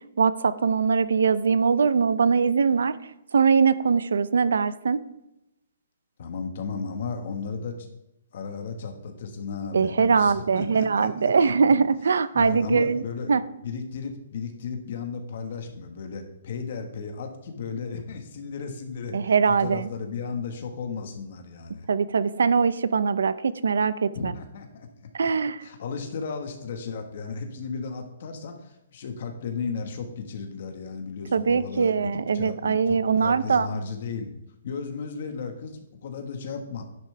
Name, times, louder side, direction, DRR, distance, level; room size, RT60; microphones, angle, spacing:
voice 1, 0.2-2.9 3.3-5.0 9.7-13.0 13.3-13.4 19.1-19.9 21.9-24.3 25.1-25.6 31.3-33.7, right 5 dB, 85° right, 15 dB, 0.7 m, -22 dB
voice 2, 6.2-7.7 8.3-11.3 12.3-13.3 13.6-19.2 19.6-21.9 24.1-24.9 25.6-34.3 34.6-36.8, left 5 dB, 40° left, 4 dB, 1.6 m, -34 dB
12.0 x 10.5 x 3.4 m, 0.87 s
hypercardioid pair, 180°, 0 cm